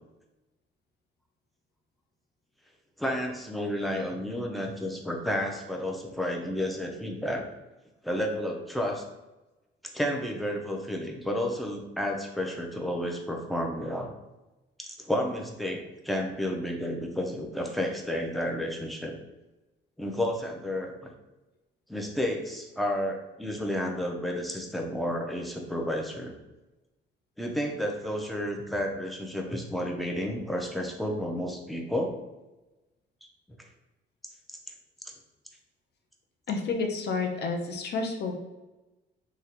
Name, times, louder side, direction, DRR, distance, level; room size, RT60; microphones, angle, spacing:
voice 1, 3.0-7.5 8.0-9.0 9.9-14.1 14.8-19.2 20.0-20.9 21.9-26.3 27.4-32.2, equal, ahead, 1 dB, 0.5 m, -31 dB
voice 2, 36.5-38.3, left 4 dB, 55° left, 4 dB, 0.6 m, -30 dB
3.3 x 2.4 x 2.8 m, 1.0 s
cardioid pair, 90°, 20 cm